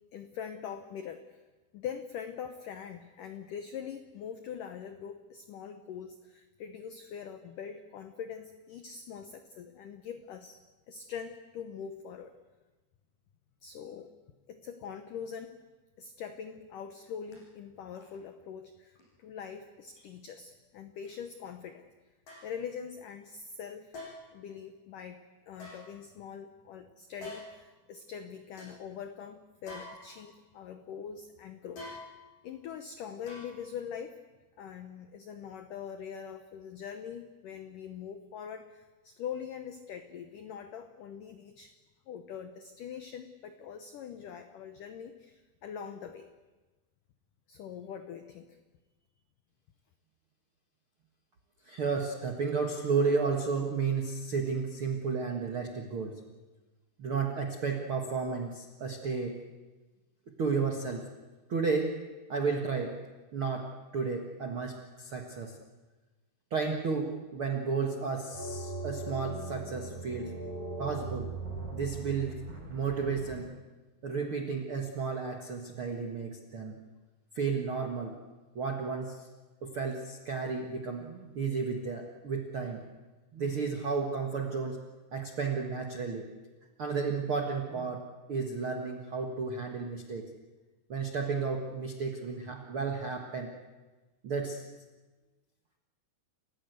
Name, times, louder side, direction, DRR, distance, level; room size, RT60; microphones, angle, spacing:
voice 1, 0.1-1.4 1.7-10.6 10.9-12.4 13.6-14.1 14.5-15.6 16.0-21.9 22.4-23.9 24.3-25.2 25.5-31.8 32.4-34.2 34.6-41.7 42.1-46.3 47.5-48.6, left 7 dB, 80° left, 8 dB, 1.9 m, -43 dB
sound 1, 17.3-17.4 17.9-18.2 19.0-19.1 20.0-20.1 21.1-21.2 22.3-22.6 23.9-24.4 25.5-26.4 27.2-27.7 28.2-28.3 28.6-28.8 29.7-30.5 31.8-32.4 33.3-33.8 34.2-34.3, left 2 dB, 50° left, 8.7 m, -47 dB
voice 2, 51.6-56.2 57.0-59.4 60.4-61.1 61.5-61.9 62.3-63.0 63.3-65.6 66.5-70.3 70.8-71.3 71.7-72.3 72.7-73.5 74.0-76.7 77.3-78.2 78.5-79.2 79.6-82.8 83.3-84.8 85.1-86.3 86.8-88.0 88.3-90.3 90.9-93.5 94.2-94.6, right 5 dB, 65° right, 2 dB, 1.3 m, -32 dB
sound 2, 68.3-73.4, right 3 dB, 45° right, 9.2 m, -40 dB
29.0 x 15.5 x 8.1 m, 1.2 s
omnidirectional pair, 5.2 m